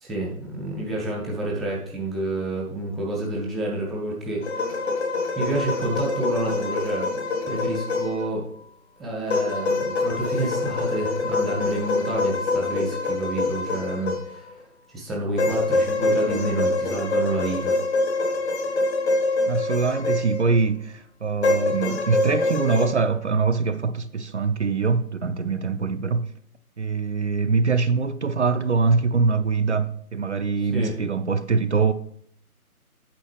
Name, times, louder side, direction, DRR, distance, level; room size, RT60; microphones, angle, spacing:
voice 1, 0.0-4.5 5.4-8.5 9.0-14.6 14.9-17.8 30.7-30.9, right 2 dB, ahead, 0.5 m, -29 dB
sound 1, 4.4-8.3 9.3-14.6 15.4-20.6 21.4-22.9, left 3 dB, 45° left, 1.5 m, -25 dB
voice 2, 19.5-26.3 26.8-31.9, right 4 dB, 50° right, 0.5 m, -23 dB
8.8 x 7.1 x 3.3 m
figure-of-eight pair, 155°, 44 cm